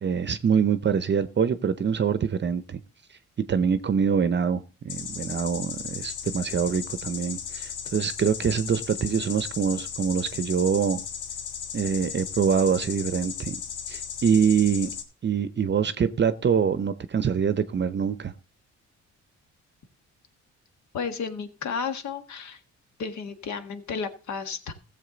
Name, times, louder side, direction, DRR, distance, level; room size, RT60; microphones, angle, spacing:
voice 1, 0.0-2.8 3.5-11.0 11.7-13.6 13.9-14.9 15.2-18.3, right 7 dB, 35° right, 0.7 m, -25 dB
sound 1, 4.9-15.0, left 7 dB, 85° left, 1.6 m, -36 dB
voice 2, 20.9-22.6 23.0-24.7, left 5 dB, 65° left, 1.6 m, -32 dB
15.0 x 7.3 x 3.9 m
cardioid pair, 90°, 30 cm